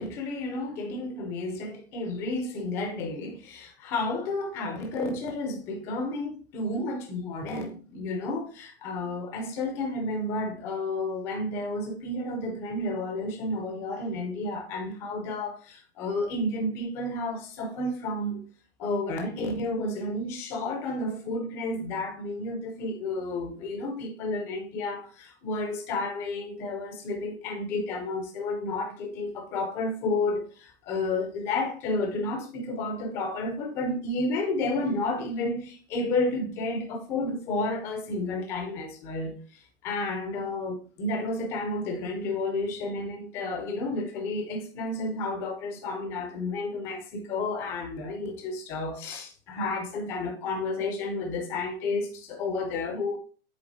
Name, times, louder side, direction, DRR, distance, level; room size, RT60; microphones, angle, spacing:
voice 1, 0.0-18.4 18.8-53.2, left 2 dB, 10° left, 0.3 m, -31 dB
8.2 x 3.3 x 3.9 m
supercardioid pair, 175°, 30 cm